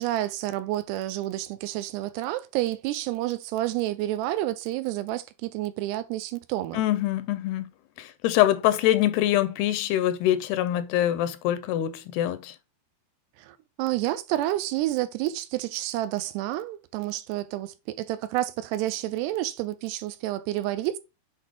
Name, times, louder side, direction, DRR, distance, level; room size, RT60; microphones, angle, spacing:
voice 1, 0.0-6.8 13.4-21.0, right 15 dB, 90° right, 2.8 m, -29 dB
voice 2, 6.7-7.7 8.0-12.5, left 13 dB, 80° left, 2.5 m, -24 dB
7.6 x 4.2 x 3.4 m
omnidirectional pair, 4.7 m